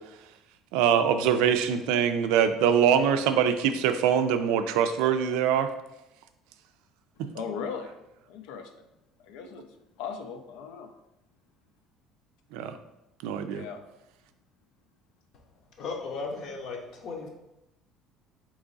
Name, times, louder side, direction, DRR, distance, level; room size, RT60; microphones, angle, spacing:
voice 1, 0.7-5.7 7.2-7.3 12.5-12.8 13.2-13.6, right 8 dB, 85° right, 8 dB, 0.4 m, -23 dB
voice 2, 7.3-7.9 8.3-8.7 9.2-9.7 10.0-10.9 13.4-13.8, left 6 dB, 80° left, 6 dB, 0.5 m, -37 dB
voice 3, 15.8-17.3, left 4 dB, 45° left, 2 dB, 0.7 m, -36 dB
3.6 x 3.0 x 3.9 m, 0.89 s
cardioid pair, 165°, 0 cm